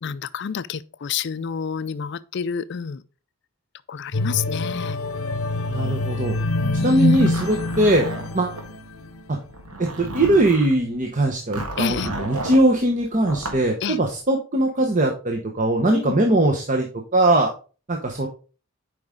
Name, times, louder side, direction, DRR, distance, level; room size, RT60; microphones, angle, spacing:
voice 1, 0.0-3.0 3.9-5.0 6.8-7.3 11.8-12.1 13.8-14.0 15.9-16.2, left 7 dB, 50° left, 0.4 m, -29 dB
sound 1, 4.1-9.4 9.9-10.1, left 2 dB, 75° left, 0.7 m, -25 dB
voice 2, 5.7-6.4 6.8-8.1 8.3-8.5 9.3-9.4 9.8-16.9 17.1-17.5 17.9-18.3, right 1 dB, 35° right, 0.8 m, -20 dB
Zipper (clothing), 7.1-8.7 9.5-10.7 11.5-12.6 13.2-13.6, right 1 dB, 90° right, 1.6 m, -33 dB
7.7 x 5.1 x 3.6 m
head